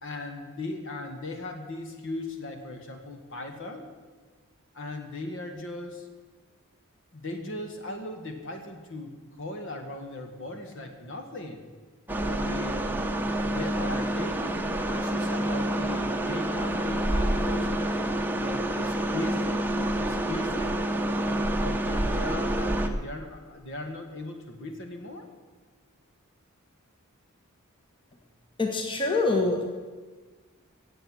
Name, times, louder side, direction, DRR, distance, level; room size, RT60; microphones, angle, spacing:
voice 1, 0.0-3.9 4.7-6.1 7.1-9.1 9.4-11.6 12.2-12.9 13.4-17.7 18.4-20.8 21.3-25.3, left 2 dB, 60° left, 5 dB, 1.9 m, -38 dB
sound 1, 12.1-22.9, right 1 dB, 10° right, 0.8 m, -28 dB
voice 2, 28.6-29.7, left 3 dB, 25° left, 3 dB, 1.3 m, -25 dB
16.0 x 8.0 x 7.8 m, 1.4 s
head